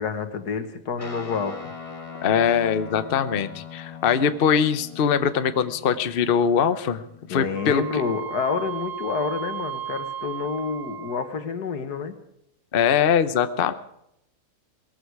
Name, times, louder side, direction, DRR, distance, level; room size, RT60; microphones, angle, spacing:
voice 1, 0.0-1.6 7.3-12.1, left 5 dB, 80° left, 8 dB, 2.0 m, -28 dB
Guitar, 1.0-8.6, left 6 dB, 20° left, 1.6 m, -42 dB
voice 2, 2.2-7.0 7.3-8.0 12.7-13.7, left 7 dB, 45° left, 11 dB, 0.8 m, -22 dB
Wind instrument woodwind instrument, 7.5-11.5, right 10 dB, 40° right, 1.6 m, -35 dB
19.5 x 14.5 x 4.7 m, 0.79 s
omnidirectional pair, 1.7 m